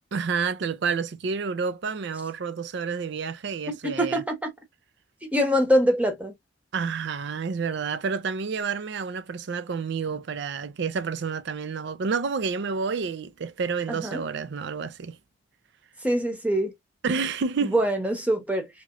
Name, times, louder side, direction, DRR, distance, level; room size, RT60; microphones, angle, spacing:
voice 1, 0.1-4.2 6.7-15.2 17.0-17.7, right 5 dB, 65° right, 0.4 m, -29 dB
voice 2, 3.8-4.5 5.2-6.3 13.9-14.2 16.0-16.7 17.6-18.7, equal, 10° right, 0.9 m, -24 dB
2.9 x 2.9 x 2.4 m
head